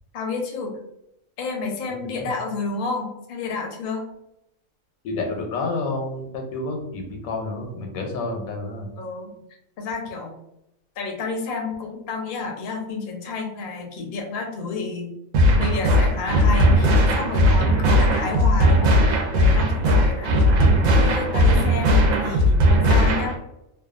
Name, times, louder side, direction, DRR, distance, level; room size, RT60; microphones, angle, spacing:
voice 1, 0.1-0.7 1.4-4.0 9.0-9.3 9.8-10.4 11.0-15.1 15.5-20.3 20.9-23.4, left 4 dB, 60° left, 1 dB, 0.6 m, -30 dB
voice 2, 1.9-2.3 5.0-8.9, left 2 dB, 85° left, 2 dB, 1.0 m, -29 dB
sound 1, 15.3-23.3, equal, 75° right, 1.0 m, -18 dB
2.6 x 2.2 x 2.4 m, 0.83 s
omnidirectional pair, 1.5 m